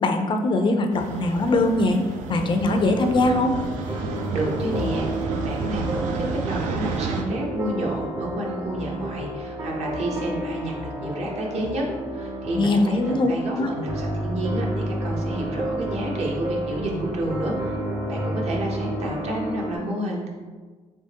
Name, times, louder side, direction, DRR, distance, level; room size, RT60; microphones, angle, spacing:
voice 1, 0.0-3.6 12.5-13.7, left 2 dB, 40° left, 5 dB, 0.4 m, -22 dB
sound 1, 0.9-7.2, right 4 dB, 90° right, 0.4 m, -31 dB
sound 2, 2.6-19.8, right 1 dB, 30° right, 0.5 m, -31 dB
voice 2, 4.3-11.8 12.1-17.8 18.1-20.3, right 1 dB, 60° right, -1 dB, 0.8 m, -30 dB
3.4 x 2.8 x 2.8 m, 1.4 s
cardioid pair, 105°, 12 cm